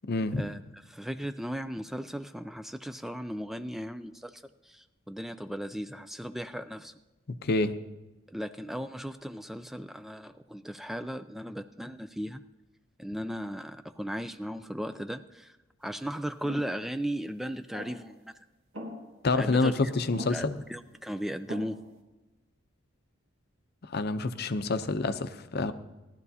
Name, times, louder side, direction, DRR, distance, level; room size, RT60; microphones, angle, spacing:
voice 1, 0.1-0.4 7.3-7.7 19.2-20.6 23.9-25.7, left 3 dB, 55° left, 11 dB, 0.6 m, -27 dB
voice 2, 0.9-6.9 8.3-12.4 13.0-15.5 15.8-18.3 19.4-19.9 20.3-21.8, equal, ahead, 10 dB, 0.3 m, -36 dB
sound 1, 16.4-16.7 17.7-18.2 18.7-19.3 20.1-20.6 21.5-22.0, equal, 75° right, 2.0 m, -42 dB
17.0 x 12.0 x 2.8 m, 1.1 s
head